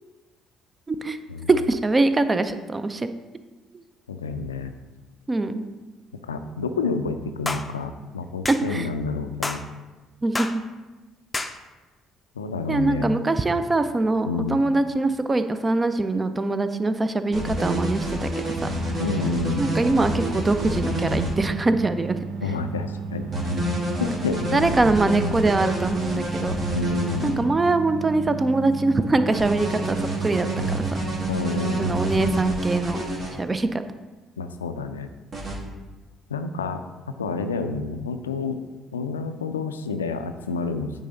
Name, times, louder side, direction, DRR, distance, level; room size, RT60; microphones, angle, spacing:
voice 1, 0.9-1.2 1.5-3.1 3.7-3.8 5.3-5.6 8.7-8.9 10.2-10.5 12.7-18.5 19.6-22.2 24.5-26.6 27.2-30.8 31.8-33.0 33.4-33.8, right 2 dB, 25° right, 10 dB, 0.5 m, -23 dB
voice 2, 4.1-4.7 6.2-9.6 12.4-13.1 14.2-14.6 19.0-19.7 22.4-23.3 24.0-24.9 26.7-27.4 31.3-32.3 34.4-35.1 36.3-36.8 37.2-38.6 38.9-40.9, left 4 dB, 90° left, 8 dB, 0.4 m, -29 dB
sound 1, 7.5-7.7 8.4-8.6 9.4-9.6 10.3-10.6 11.3-11.6, left 2 dB, 20° left, 0.5 m, -28 dB
sound 2, 17.3-21.3 23.3-27.3 29.3-33.3 35.3-35.5, right 1 dB, 50° right, 2.3 m, -28 dB
sound 3, 18.5-32.4, right 5 dB, 75° right, 0.5 m, -33 dB
9.3 x 3.9 x 3.9 m, 1.2 s
hypercardioid pair, 50°, 0 cm